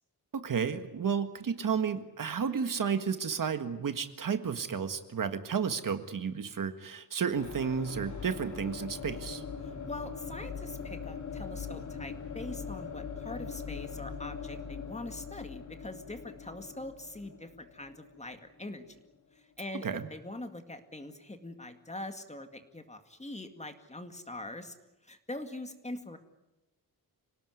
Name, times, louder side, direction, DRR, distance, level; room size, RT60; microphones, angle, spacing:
voice 1, 0.3-9.4 19.8-20.1, right 6 dB, 55° right, 9 dB, 1.7 m, -32 dB
sound 1, 7.3-19.1, left 6 dB, 50° left, 3.5 m, -42 dB
voice 2, 9.6-19.0 19.3-24.8 25.0-26.2, left 1 dB, 20° left, 7 dB, 2.1 m, -43 dB
26.5 x 18.0 x 9.6 m, 0.98 s
wide cardioid pair, 130°, 38 cm